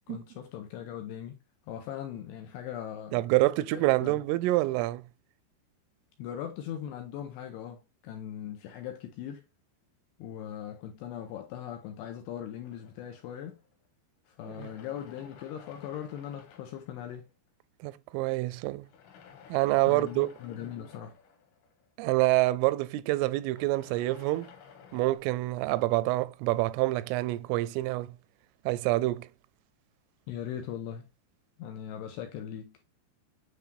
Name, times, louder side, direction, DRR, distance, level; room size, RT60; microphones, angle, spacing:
voice 1, 0.1-1.4 1.7-3.2 3.7-4.2 6.2-9.4 10.2-13.6 14.3-17.3 19.9-21.2 30.3-31.1 31.6-32.8, left 10 dB, 85° left, 2.5 m, -40 dB
voice 2, 3.1-5.0 14.5-14.7 17.8-18.9 19.5-20.3 22.0-24.5 24.9-28.2 28.7-29.3, right 19 dB, 85° right, 3.1 m, -27 dB
sound 1, 12.6-13.9 14.4-17.5 18.8-22.3 23.4-25.2, left 7 dB, 70° left, 3.4 m, -54 dB
9.6 x 3.7 x 2.7 m
omnidirectional pair, 5.6 m